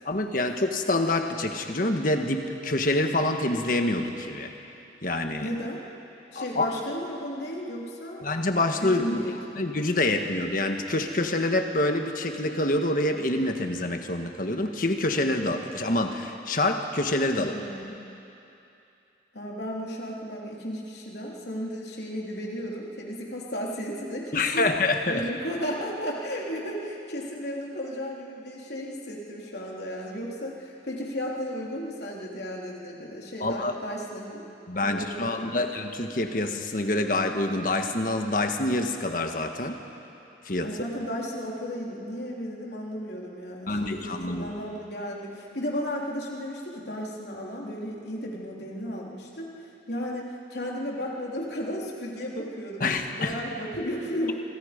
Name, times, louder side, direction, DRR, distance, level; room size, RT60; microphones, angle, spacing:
voice 1, 0.0-4.5 5.0-5.5 6.3-6.7 8.2-9.2 9.6-17.5 24.3-25.2 33.4-33.7 34.7-39.8 40.4-40.7 43.7-44.5 52.8-53.4, left 2 dB, 50° left, 5 dB, 1.6 m, -26 dB
voice 2, 5.4-5.8 6.3-8.2 8.8-9.6 17.3-18.0 19.3-24.7 25.1-34.5 34.8-35.6 40.6-54.3, equal, 65° left, -2 dB, 3.5 m, -34 dB
27.0 x 24.5 x 5.3 m, 2.8 s
head